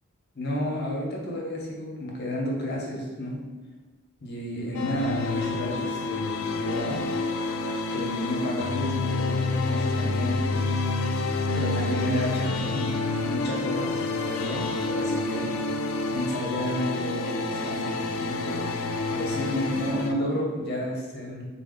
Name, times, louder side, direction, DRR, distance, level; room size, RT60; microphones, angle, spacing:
voice 1, 0.3-3.4 4.2-7.1 7.9-10.5 11.5-15.5 16.1-21.5, equal, 50° left, -2 dB, 0.8 m, -31 dB
sound 1, 4.7-20.1, left 3 dB, 85° left, 0.4 m, -28 dB
4.3 x 2.0 x 3.7 m, 1.2 s
head